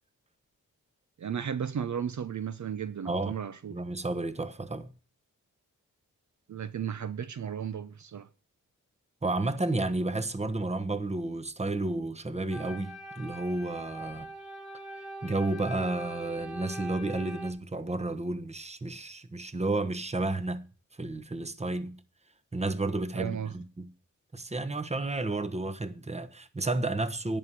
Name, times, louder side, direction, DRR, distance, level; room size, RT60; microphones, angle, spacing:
voice 1, 1.2-3.8 6.5-8.3 23.1-23.5, right 8 dB, 60° right, 0.8 m, -34 dB
voice 2, 3.0-3.4 3.7-4.9 9.2-14.3 15.2-20.6 21.0-21.9 22.5-23.9 24.3-27.4, right 2 dB, 20° right, 1.1 m, -31 dB
sound 1, 12.5-17.5, right 1 dB, ahead, 2.8 m, -42 dB
10.5 x 5.5 x 8.2 m
cardioid pair, 65°, 33 cm